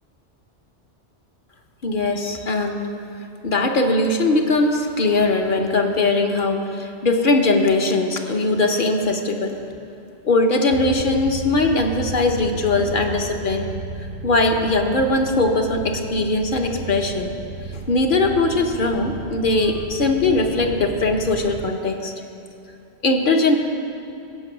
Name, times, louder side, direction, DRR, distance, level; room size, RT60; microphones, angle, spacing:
voice 1, 1.8-2.9 3.4-9.6 10.2-13.7 14.2-17.3 17.7-22.1 23.0-23.6, left 2 dB, 55° left, 3 dB, 0.9 m, -20 dB
sound 1, 10.7-21.7, right 4 dB, 55° right, 0.6 m, -34 dB
16.0 x 5.3 x 5.9 m, 2.7 s
omnidirectional pair, 1.1 m